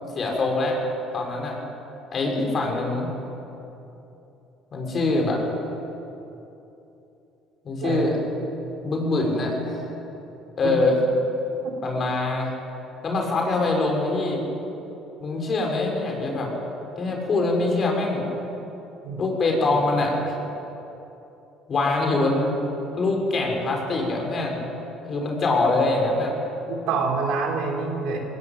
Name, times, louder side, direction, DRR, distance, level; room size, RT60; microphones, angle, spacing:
voice 1, 0.2-0.8 1.1-1.6 2.1-3.1 4.7-5.4 7.6-8.2 8.8-9.9 10.6-11.0 11.8-12.5 13.0-14.4 15.2-16.5 17.0-18.2 19.2-20.4 21.7-22.5 23.0-24.6 25.0-26.3, left 2 dB, 45° left, 1 dB, 6.2 m, -24 dB
voice 2, 7.8-8.1 10.6-10.7 11.6-11.8 19.0-19.2 26.7-28.2, right 4 dB, 75° right, 0 dB, 3.7 m, -27 dB
19.5 x 18.5 x 9.0 m, 3.0 s
supercardioid pair, 85°, 0 cm